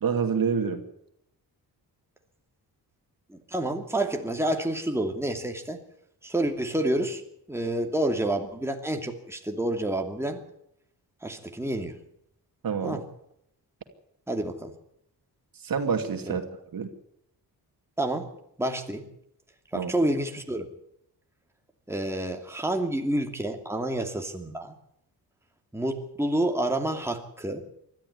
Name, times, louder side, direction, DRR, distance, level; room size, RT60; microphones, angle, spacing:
voice 1, 0.0-0.8 12.6-13.0 15.6-16.4 16.7-16.9 19.7-19.9, right 6 dB, 55° right, 6 dB, 2.6 m, -27 dB
voice 2, 3.3-5.8 6.2-7.2 7.5-10.4 11.2-12.0 12.8-13.0 14.3-14.7 16.3-16.4 18.0-18.3 18.6-19.1 19.7-20.7 21.9-24.7 25.7-27.6, right 1 dB, 5° right, 3 dB, 2.7 m, -29 dB
20.5 x 13.5 x 9.7 m, 0.75 s
cardioid pair, 90°, 41 cm